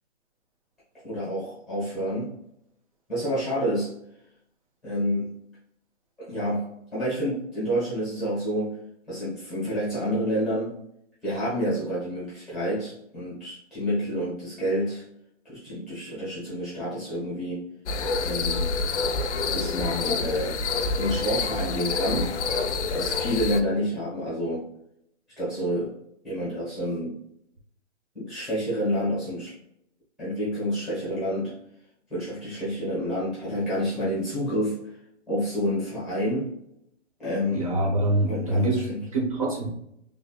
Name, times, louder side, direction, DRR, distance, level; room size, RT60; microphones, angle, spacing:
voice 1, 1.0-2.3 3.1-3.9 4.8-5.3 6.2-8.8 9.1-10.7 11.2-15.0 15.4-17.7 18.2-18.7 19.5-20.6 21.0-22.3 22.9-24.7 25.4-25.9 26.2-27.2 28.1-29.5 30.2-31.6 32.1-34.8 35.3-36.5 37.2-37.7 38.2-39.0, equal, ahead, -9 dB, 1.0 m, -28 dB
sound 1, 17.9-23.6, left 4 dB, 65° left, 0.5 m, -27 dB
voice 2, 37.5-39.7, right 1 dB, 30° right, -1 dB, 0.6 m, -25 dB
3.4 x 3.3 x 2.2 m, 0.76 s
hypercardioid pair, 165°, 38 cm